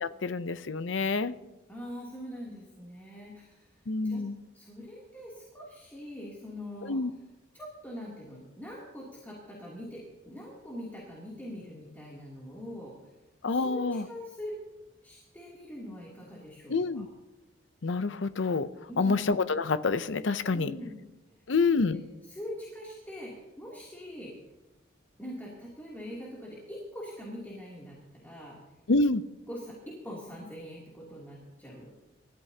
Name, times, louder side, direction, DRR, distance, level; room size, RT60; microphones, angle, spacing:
voice 1, 0.0-1.3 3.9-4.4 6.9-7.1 13.4-14.0 16.7-17.1 17.8-18.7 19.0-20.7 21.5-22.0 28.9-29.2, left 3 dB, 65° left, 13 dB, 0.6 m, -27 dB
voice 2, 1.7-4.2 4.5-7.0 7.5-13.0 13.5-14.5 15.0-17.1 18.9-19.2 20.5-21.0 21.9-24.3 25.2-28.6 29.5-31.9, equal, 10° left, -5 dB, 2.8 m, -43 dB
28.0 x 14.0 x 2.9 m, 1.1 s
head